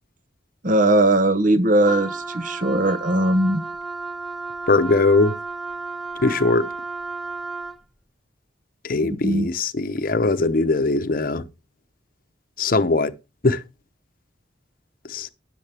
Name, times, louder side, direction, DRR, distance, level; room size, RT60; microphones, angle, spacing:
voice 1, 0.6-3.6 9.0-9.5, right 1 dB, 45° right, 0.9 m, -19 dB
Wind instrument woodwind instrument, 1.8-7.8, right 3 dB, ahead, 0.5 m, -33 dB
voice 2, 4.7-5.4 6.2-6.7 8.8-11.5 12.6-13.1 13.4-13.6 15.1-15.3, left 3 dB, 50° left, 0.8 m, -20 dB
12.5 x 9.2 x 3.4 m
head